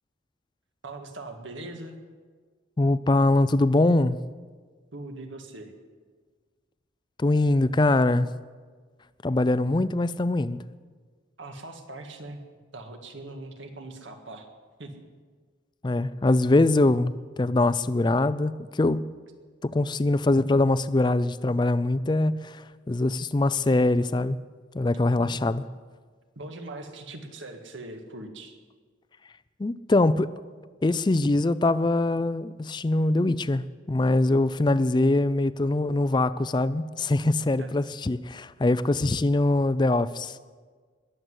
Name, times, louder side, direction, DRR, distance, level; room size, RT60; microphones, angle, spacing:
voice 1, 0.8-2.0 4.9-5.7 11.4-12.4 12.7-14.5 14.8-15.1 25.2-25.4 26.4-28.5 37.6-37.7, right 2 dB, 75° right, 1.8 m, -41 dB
voice 2, 2.8-4.2 7.2-8.3 9.2-10.6 15.8-17.1 17.4-19.1 19.6-22.6 22.9-24.4 24.7-25.6 29.6-30.3 30.8-40.4, left 2 dB, 25° left, 0.4 m, -23 dB
21.0 x 7.9 x 8.0 m
head